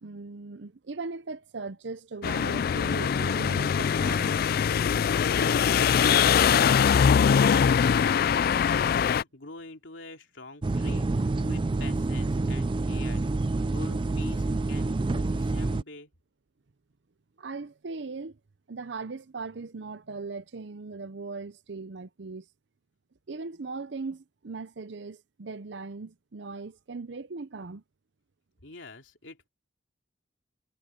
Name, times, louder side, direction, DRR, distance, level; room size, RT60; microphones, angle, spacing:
voice 1, 0.0-4.4 17.4-18.4 18.7-22.5 23.3-27.8, right 4 dB, 70° right, 0.7 m, -39 dB
sound 1, 2.2-9.2, left 7 dB, 50° left, 0.3 m, -22 dB
voice 2, 5.2-16.1 28.6-29.5, left 3 dB, 80° left, 3.2 m, -43 dB
sound 2, 10.6-15.8, right 2 dB, 25° right, 0.4 m, -27 dB
head